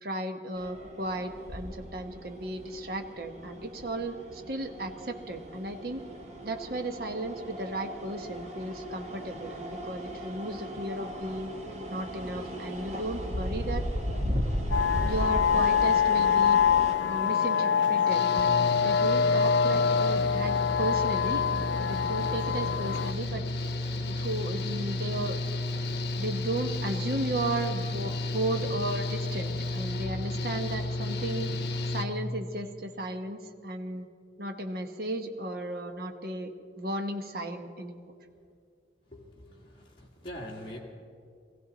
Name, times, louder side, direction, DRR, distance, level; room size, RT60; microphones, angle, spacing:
voice 1, 0.0-6.0 6.4-11.5 11.9-13.8 15.0-16.6 17.0-21.5 21.8-23.4 24.1-25.4 26.2-31.5 31.9-34.1 34.4-38.0, right 1 dB, 55° right, 5 dB, 1.0 m, -35 dB
sound 1, 0.6-16.9, equal, 40° right, 1.4 m, -36 dB
sound 2, 14.7-23.1, left 7 dB, 80° left, 0.4 m, -25 dB
Engine / Mechanical fan, 18.1-32.0, left 2 dB, 60° left, 1.1 m, -32 dB
voice 2, 39.1-40.8, equal, 30° left, -4 dB, 1.9 m, -43 dB
21.0 x 15.5 x 4.0 m, 2.4 s
head